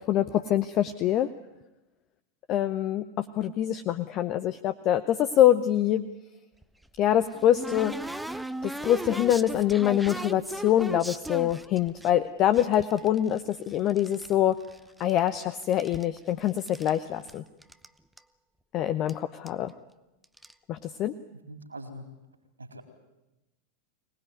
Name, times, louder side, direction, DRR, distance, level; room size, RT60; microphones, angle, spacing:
voice 1, 0.1-1.3 2.5-6.0 7.0-7.9 8.6-14.6 15.0-17.4 18.7-19.7 20.7-21.1, left 11 dB, 35° left, 12 dB, 0.8 m, -25 dB
sound 1, 6.6-12.1 12.5-14.3 14.6-15.4 15.6-17.0 17.3-17.4 17.6-17.9 18.2-18.3 19.1-19.2 19.5-19.7 20.2-20.5, right 1 dB, 5° right, 0.8 m, -38 dB
voice 2, 21.3-22.1 22.6-22.8, right 1 dB, 80° right, 5 dB, 4.2 m, -43 dB
24.5 x 19.0 x 9.5 m, 0.98 s
figure-of-eight pair, 90°, 0 cm